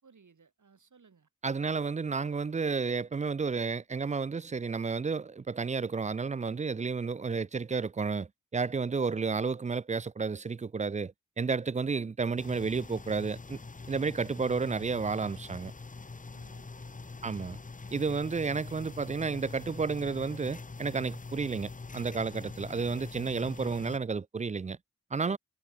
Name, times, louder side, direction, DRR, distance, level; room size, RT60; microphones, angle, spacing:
voice 1, 0.0-1.3 12.0-12.1 16.3-17.3, right 5 dB, 80° right, 4.2 m, -62 dB
voice 2, 1.4-13.6 13.9-15.7 17.2-17.6 17.9-24.8 25.1-25.4, right 5 dB, 25° right, 0.3 m, -31 dB
sound 1, 12.4-24.0, left 3 dB, 25° left, 0.8 m, -44 dB
wide cardioid pair, 70°, 30 cm